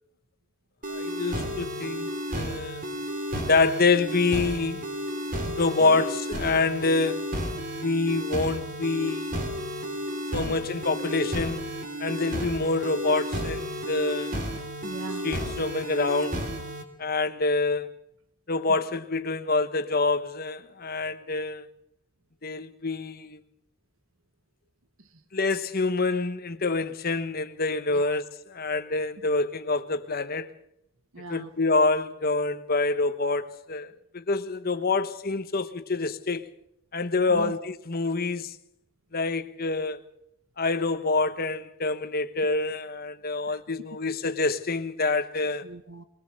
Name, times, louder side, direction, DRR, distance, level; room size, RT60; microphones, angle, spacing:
sound 1, 0.8-16.8, equal, 40° right, 3.3 m, -32 dB
voice 1, 0.9-2.9 3.5-4.8 5.4-7.5 7.8-9.4 10.3-11.7 12.0-14.4 15.2-16.3 17.0-17.9 18.5-21.7 22.4-23.4 25.3-30.6 31.3-36.5 36.9-38.5 39.1-40.1 40.6-45.6, left 3 dB, 45° left, 1.2 m, -26 dB
voice 2, 14.5-15.3 18.7-18.8 27.9-28.0 31.1-31.5 37.3-37.5 43.5-43.6 45.6-46.0, right 2 dB, 70° right, 1.5 m, -40 dB
22.0 x 20.0 x 6.6 m
head